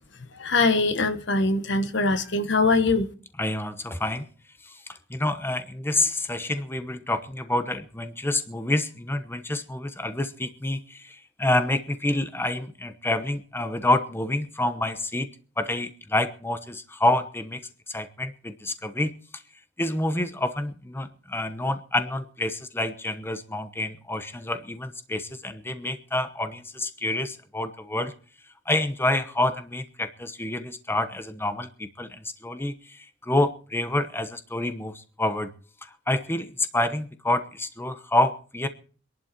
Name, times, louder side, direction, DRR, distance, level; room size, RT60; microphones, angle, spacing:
voice 1, 0.4-3.1, left 3 dB, 65° left, 1.4 m, -22 dB
voice 2, 3.4-4.3 4.6-19.4 19.8-28.1 28.6-35.5 35.8-38.7, left 1 dB, 10° left, 1.0 m, -28 dB
23.5 x 11.5 x 4.4 m
head